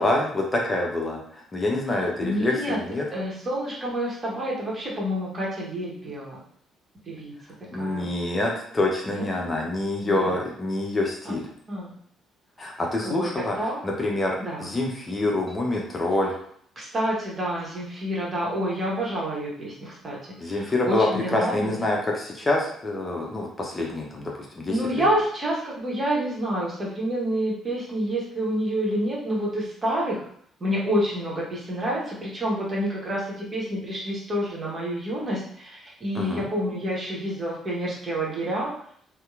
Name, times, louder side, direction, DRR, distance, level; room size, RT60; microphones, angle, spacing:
voice 1, 0.0-3.1 7.7-11.5 12.6-13.6 13.8-16.3 20.4-25.1 36.1-36.5, left 2 dB, 25° left, -1 dB, 0.6 m, -26 dB
voice 2, 1.9-2.8 3.1-6.4 7.1-7.3 7.8-8.1 9.1-9.3 10.0-10.4 11.2-11.3 11.7-11.9 13.0-13.3 13.6-13.8 14.4-14.7 16.8-20.2 20.4-21.8 24.7-30.2 30.6-38.7, equal, 35° right, -4 dB, 1.0 m, -28 dB
2.8 x 2.1 x 2.4 m, 0.62 s
figure-of-eight pair, 45°, 0 cm